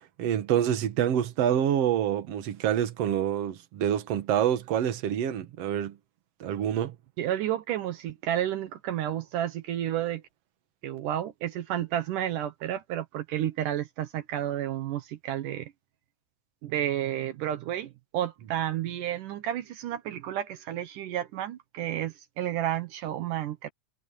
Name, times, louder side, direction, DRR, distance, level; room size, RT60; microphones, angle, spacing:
voice 1, 0.2-6.0 6.4-7.0, right 10 dB, 55° right, 2.1 m, -27 dB
voice 2, 7.2-10.2 10.8-15.7 16.6-23.7, right 12 dB, 75° right, 2.5 m, -31 dB
omnidirectional pair, 4.0 m